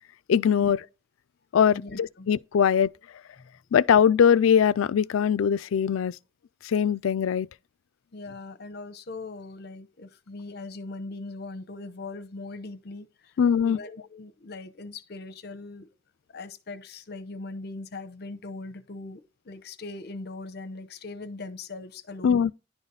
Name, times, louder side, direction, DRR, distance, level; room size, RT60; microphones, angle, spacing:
voice 1, 0.3-0.8 1.5-2.9 3.7-6.2 6.6-7.5 13.4-13.8 22.2-22.5, left 7 dB, 80° left, 0.4 m, -21 dB
voice 2, 1.7-2.3 3.4-3.5 8.1-13.4 13.6-15.9 16.3-22.4, left 3 dB, 50° left, 0.8 m, -40 dB
11.0 x 4.0 x 5.5 m
head